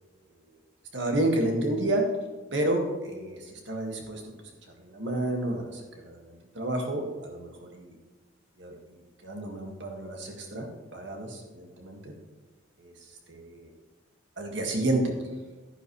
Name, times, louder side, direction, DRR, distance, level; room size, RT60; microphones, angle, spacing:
voice 1, 0.9-2.0 2.5-4.2 4.8-7.9 8.6-8.7 9.2-12.1 12.8-12.9 13.3-13.7 14.4-15.0, right 1 dB, 70° right, 2 dB, 2.0 m, -30 dB
11.5 x 10.0 x 3.3 m, 1.3 s
head